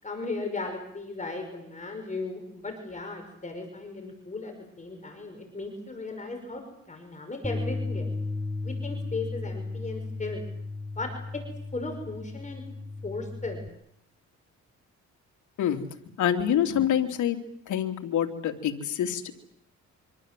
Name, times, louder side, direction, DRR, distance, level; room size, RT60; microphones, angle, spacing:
voice 1, 0.0-8.1 8.6-10.4 11.0-11.4 11.7-12.6 13.0-13.6, left 3 dB, 25° left, 4 dB, 5.8 m, -36 dB
Bass guitar, 7.4-13.7, left 3 dB, ahead, 1.5 m, -35 dB
voice 2, 16.2-17.4 17.7-19.3, left 10 dB, 75° left, 4 dB, 3.1 m, -26 dB
25.5 x 25.5 x 7.7 m, 0.74 s
cardioid pair, 90°, 30 cm